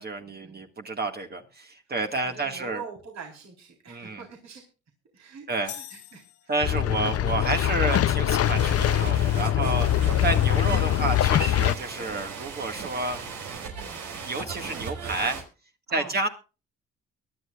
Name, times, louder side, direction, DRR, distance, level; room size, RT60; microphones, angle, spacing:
voice 1, 0.0-2.8 3.9-4.2 5.5-5.7 6.5-9.9 10.2-13.2 14.2-15.4 15.9-16.3, right 3 dB, 30° right, 4 dB, 1.8 m, -30 dB
voice 2, 2.2-4.6 5.1-6.5 9.9-10.1 13.7-14.1 14.7-14.9 15.9-16.2, right 5 dB, 60° right, 0 dB, 4.0 m, -44 dB
sound 1, 5.7-7.1, left 11 dB, 75° left, 1.9 m, -43 dB
sound 2, 6.6-11.7, left 12 dB, 50° left, 0.6 m, -23 dB
sound 3, 8.4-15.4, right 5 dB, 90° right, 4.4 m, -38 dB
23.0 x 11.5 x 2.4 m, 0.32 s
cardioid pair, 90°, 30 cm